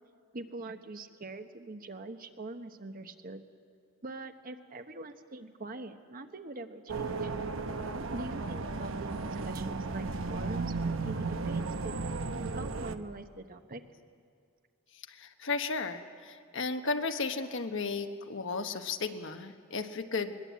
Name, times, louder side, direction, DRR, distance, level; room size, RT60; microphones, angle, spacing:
voice 1, 0.3-3.4 4.0-7.3 8.1-12.0 12.5-13.8, right 2 dB, 45° right, 7 dB, 1.1 m, -43 dB
sound 1, 6.9-12.9, right 3 dB, 70° right, 0.9 m, -34 dB
voice 2, 15.1-20.4, left 4 dB, 65° left, 7 dB, 1.2 m, -34 dB
21.0 x 20.5 x 8.4 m, 2.3 s
head